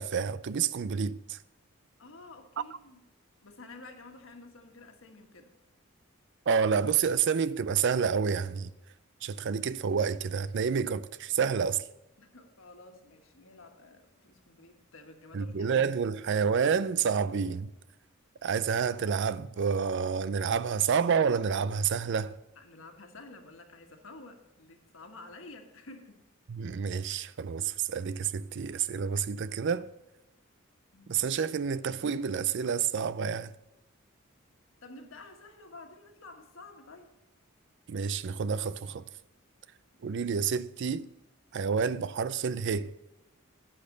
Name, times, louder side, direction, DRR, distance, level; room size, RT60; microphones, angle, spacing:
voice 1, 0.0-1.4 6.5-8.7 9.2-11.8 15.3-17.7 18.4-22.4 26.5-29.9 31.1-33.5 37.9-39.0 40.0-41.1 41.5-42.9, right 6 dB, 60° right, 0.4 m, -29 dB
voice 2, 2.0-3.0 3.4-5.5 12.2-15.7 22.5-26.2 30.9-31.3 34.8-37.1, left 2 dB, 65° left, 1.5 m, -50 dB
10.0 x 8.7 x 3.9 m
head